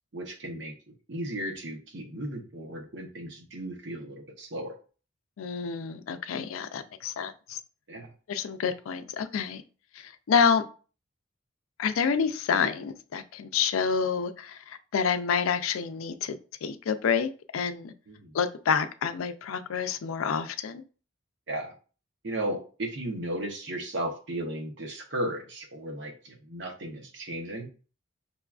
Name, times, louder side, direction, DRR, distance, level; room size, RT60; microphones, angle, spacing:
voice 1, 0.1-0.7 1.1-4.7 7.9-8.1 18.1-18.3 21.5-21.7 22.2-27.7, right 1 dB, 60° right, 2 dB, 0.8 m, -35 dB
voice 2, 5.4-7.6 8.3-9.6 9.9-10.7 11.8-17.9 18.3-20.8, left 6 dB, 85° left, 10 dB, 0.4 m, -28 dB
5.4 x 2.3 x 2.3 m, 0.37 s
head